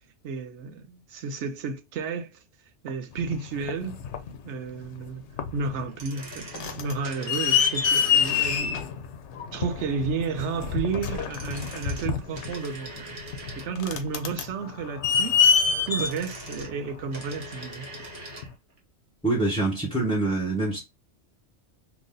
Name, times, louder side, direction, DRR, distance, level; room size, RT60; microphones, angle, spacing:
voice 1, 0.2-2.4 2.8-4.0 4.4-5.2 5.5-8.9 9.5-13.2 13.6-15.6 15.9-17.9, right 5 dB, 75° right, 0.9 m, -32 dB
sound 1, 3.2-4.4 5.0-5.1 5.4-5.9 6.2-17.7 18.4-18.5, left 7 dB, 75° left, 0.9 m, -26 dB
sound 2, 5.8-8.7 11.1-14.0 15.7-18.5 18.8-18.9, right 2 dB, 45° right, 1.1 m, -42 dB
voice 2, 19.2-20.8, right 2 dB, 5° left, 0.9 m, -25 dB
3.0 x 2.6 x 3.7 m
omnidirectional pair, 1.2 m